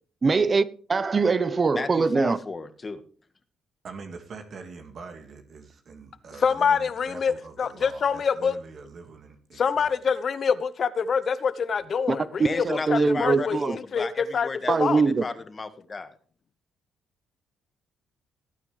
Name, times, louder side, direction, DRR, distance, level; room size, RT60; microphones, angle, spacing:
voice 1, 0.2-2.4 12.1-12.2 12.6-13.8 14.7-15.2, right 4 dB, 35° right, 0.8 m, -22 dB
voice 2, 1.7-3.0 12.4-14.7 15.2-16.2, left 4 dB, 30° left, 1.6 m, -34 dB
voice 3, 3.8-9.9, right 4 dB, 55° right, 1.9 m, -44 dB
voice 4, 6.4-8.5 9.6-13.6 13.9-15.1, left 6 dB, 50° left, 0.9 m, -25 dB
19.0 x 9.1 x 3.3 m
cardioid pair, 90°, 0 cm